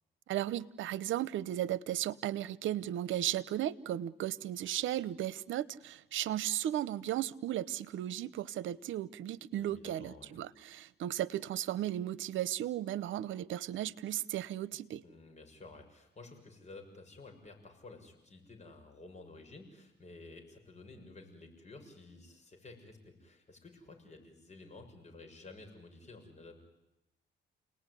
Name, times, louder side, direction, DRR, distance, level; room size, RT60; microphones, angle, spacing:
voice 1, 0.3-15.0, right 12 dB, 80° right, 0.9 m, -35 dB
voice 2, 9.5-10.4 15.0-26.6, left 3 dB, 35° left, 6.8 m, -53 dB
29.5 x 19.0 x 9.9 m
cardioid pair, 90°, 20 cm